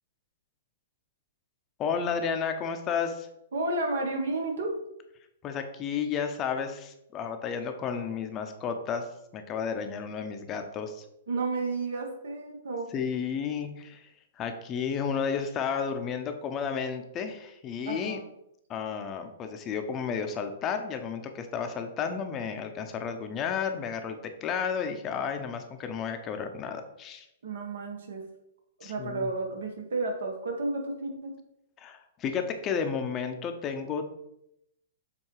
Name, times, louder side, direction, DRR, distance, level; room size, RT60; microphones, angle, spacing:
voice 1, 1.8-3.3 5.4-9.0 9.3-11.0 12.9-14.1 14.4-18.2 18.7-27.3 28.8-29.3 31.8-34.0, left 6 dB, 25° left, 6 dB, 0.7 m, -32 dB
voice 2, 3.5-4.7 11.3-12.9 17.8-18.2 27.4-28.2 28.8-31.4, right 2 dB, 75° right, 2 dB, 1.6 m, -32 dB
7.2 x 2.7 x 4.8 m, 0.81 s
hypercardioid pair, 140°, 0 cm